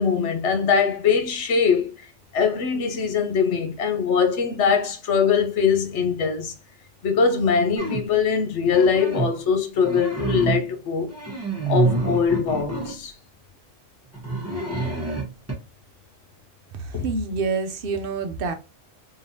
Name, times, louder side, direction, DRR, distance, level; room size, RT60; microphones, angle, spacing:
voice 1, 0.0-1.9 2.3-6.5 7.0-11.1 11.7-13.1 16.9-17.0, left 6 dB, 70° left, 1.1 m, -22 dB
sound 1, 7.8-8.1 8.6-9.4 9.8-10.7 11.1-13.0 14.1-15.5, right 3 dB, 10° right, 1.2 m, -27 dB
voice 2, 16.7-18.5, right 4 dB, 55° right, 0.8 m, -27 dB
3.8 x 3.4 x 2.7 m
omnidirectional pair, 1.3 m